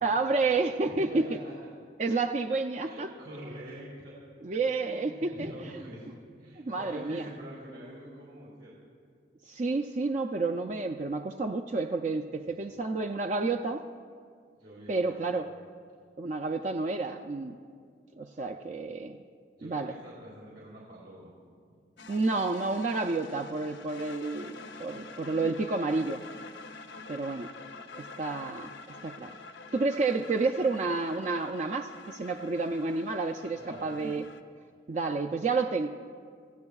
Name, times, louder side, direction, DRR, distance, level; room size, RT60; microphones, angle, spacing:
voice 1, 0.0-1.4 2.0-3.1 4.4-5.7 6.6-7.2 9.5-13.8 14.9-15.5 16.2-17.5 18.2-19.2 19.6-19.9 22.1-26.2 27.1-27.5 28.0-28.7 29.0-29.3 29.7-34.2 34.9-35.9, right 3 dB, 40° right, 5 dB, 0.4 m, -30 dB
voice 2, 0.7-1.5 2.8-4.4 4.8-6.1 6.4-8.7 12.5-12.7 14.5-15.3 19.6-21.3 21.7-21.8 33.5-33.9, right 1 dB, 75° right, -7 dB, 3.3 m, -45 dB
sound 1, 22.0-34.4, left 3 dB, 75° left, 0.7 m, -47 dB
26.5 x 15.5 x 2.4 m, 2.1 s
head